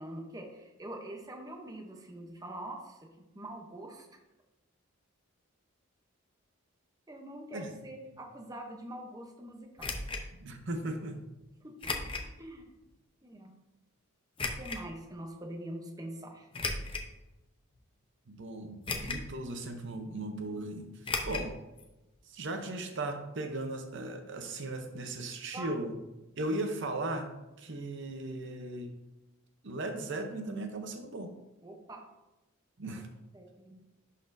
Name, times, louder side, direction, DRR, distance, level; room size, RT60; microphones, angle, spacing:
voice 1, 0.0-3.0 3.3-4.1 7.1-10.0 11.6-11.9 12.4-12.6 13.2-13.5 14.5-16.5 25.5-25.7 31.6-32.1 32.9-33.0 33.3-33.8, right 1 dB, 15° right, 2 dB, 0.7 m, -44 dB
sound 1, 9.8-10.2 11.8-12.3 12.9-13.0 14.4-14.8 16.5-17.1 17.7-17.8 18.9-19.3 19.6-19.7 21.0-21.5 21.8-21.9 22.1-22.2, left 3 dB, 25° left, 0.6 m, -35 dB
voice 2, 10.3-11.2 18.3-21.6 22.2-26.0 26.4-28.9 29.6-31.3 32.8-33.1, right 2 dB, 55° right, 5 dB, 0.7 m, -37 dB
11.0 x 4.2 x 2.6 m, 1.0 s
head